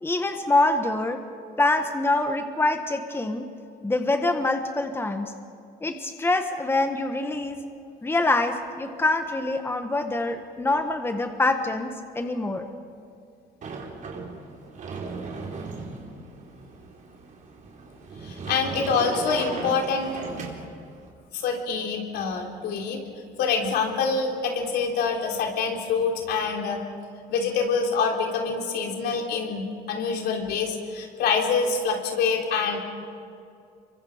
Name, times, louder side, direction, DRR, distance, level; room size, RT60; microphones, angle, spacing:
voice 1, 0.0-1.2 1.6-3.5 3.8-5.3 5.8-7.6 8.0-11.9 12.1-12.7, left 2 dB, 15° left, 6 dB, 1.4 m, -25 dB
Sliding door, 13.6-21.1, right 4 dB, 50° right, 4.1 m, -37 dB
voice 2, 18.2-20.1 21.3-23.0 23.4-26.8 27.3-32.8, left 5 dB, 75° left, 2 dB, 3.7 m, -26 dB
26.5 x 24.0 x 5.1 m, 2.4 s
cardioid pair, 110°, 17 cm